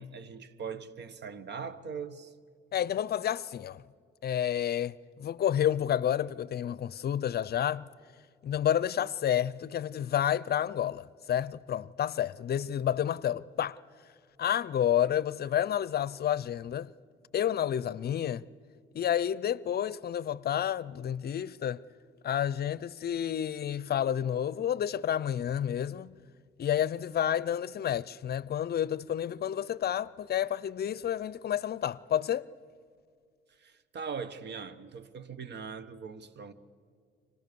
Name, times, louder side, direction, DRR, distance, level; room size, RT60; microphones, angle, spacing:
voice 1, 0.0-2.3 33.5-36.5, right 5 dB, 60° right, 1.3 m, -41 dB
voice 2, 2.7-3.8 4.2-7.8 8.4-13.8 14.4-16.9 17.3-18.4 18.9-21.8 22.2-26.1 26.6-32.5, left 10 dB, 55° left, 0.6 m, -30 dB
29.5 x 25.5 x 6.9 m
cardioid pair, 90°, 20 cm